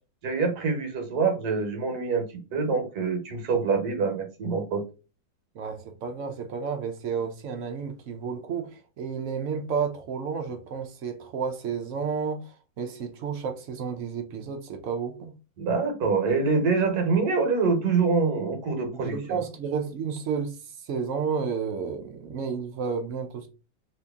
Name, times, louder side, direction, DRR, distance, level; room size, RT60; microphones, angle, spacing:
voice 1, 0.2-4.8 15.6-19.1, right 4 dB, 60° right, 1.4 m, -25 dB
voice 2, 5.5-12.5 12.8-15.3 18.9-20.6 20.8-23.5, right 6 dB, 80° right, 0.6 m, -31 dB
3.0 x 2.8 x 3.4 m
omnidirectional pair, 2.0 m